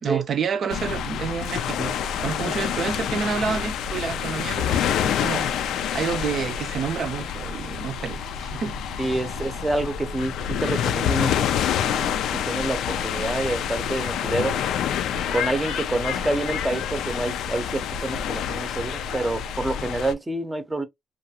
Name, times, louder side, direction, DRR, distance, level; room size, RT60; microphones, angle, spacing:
voice 1, 0.0-9.1, right 6 dB, 55° right, 0.5 m, -29 dB
sound 1, 0.7-20.1, left 8 dB, 80° left, 0.3 m, -27 dB
voice 2, 9.0-11.5 11.8-12.2 12.5-14.6 15.3-20.9, right 2 dB, 15° right, 0.6 m, -28 dB
2.5 x 2.3 x 2.8 m
cardioid pair, 90°, 0 cm